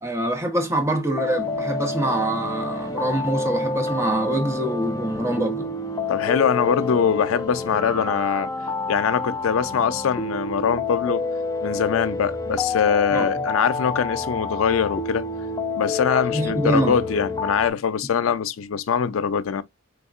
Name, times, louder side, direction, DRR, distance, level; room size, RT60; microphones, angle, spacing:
voice 1, 0.0-5.7 13.1-13.4 16.3-17.0, right 1 dB, 15° right, 0.8 m, -25 dB
sound 1, 1.1-17.7, left 3 dB, 20° left, 0.5 m, -28 dB
voice 2, 6.1-8.5 8.9-11.3 11.6-15.3 15.8-19.6, left 7 dB, 85° left, 0.4 m, -23 dB
3.5 x 3.3 x 2.4 m
head